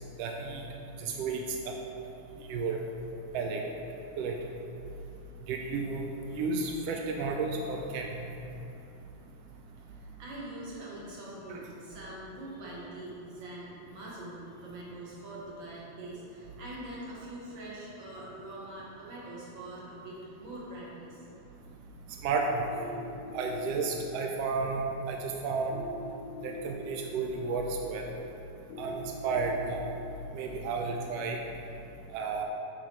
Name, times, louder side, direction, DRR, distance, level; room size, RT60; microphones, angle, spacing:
voice 1, 0.2-0.6 1.0-1.7 2.5-2.8 3.3-3.6 4.2-4.4 5.5-6.1 6.3-8.2 11.5-11.6 22.2-22.7 23.3-25.8 26.4-28.1 28.8-29.9 30.3-31.4 32.1-32.4, right 4 dB, 85° right, 2 dB, 1.4 m, -32 dB
voice 2, 9.9-21.3, right 1 dB, 50° right, -6 dB, 1.8 m, -43 dB
sound 1, 22.7-23.7 25.7-26.7 28.7-29.7, left 3 dB, 80° left, 1.7 m, -43 dB
9.1 x 4.0 x 4.5 m, 2.8 s
omnidirectional pair, 3.4 m